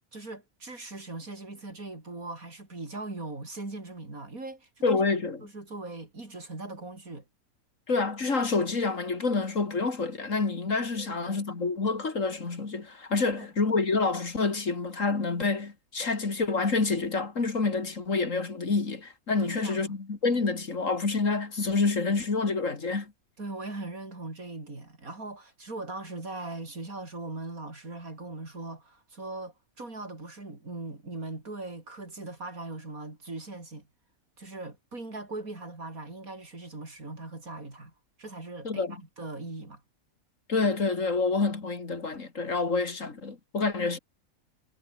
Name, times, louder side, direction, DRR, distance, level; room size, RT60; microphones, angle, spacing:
voice 1, 0.1-5.0 5.4-7.2 10.9-11.4 13.3-13.5 19.4-20.0 23.4-33.9 34.4-37.9 38.2-39.8, right 2 dB, 75° right, 5.5 m, -40 dB
voice 2, 4.8-5.4 7.9-23.1 38.6-39.0 40.5-44.0, left 4 dB, 65° left, 3.1 m, -28 dB
omnidirectional pair, 1.5 m